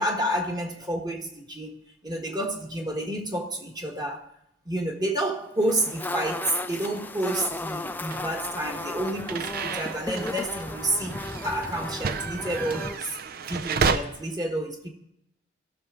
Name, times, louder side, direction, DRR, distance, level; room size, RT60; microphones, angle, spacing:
voice 1, 0.0-1.7 2.0-4.2 4.6-11.2 11.4-13.2 13.5-14.9, right 1 dB, 20° right, 1.4 m, -29 dB
sound 1, 5.6-13.0, left 2 dB, 10° left, 0.4 m, -35 dB
sound 2, 8.1-14.0, right 5 dB, 50° right, 0.6 m, -32 dB
16.0 x 6.7 x 3.6 m
head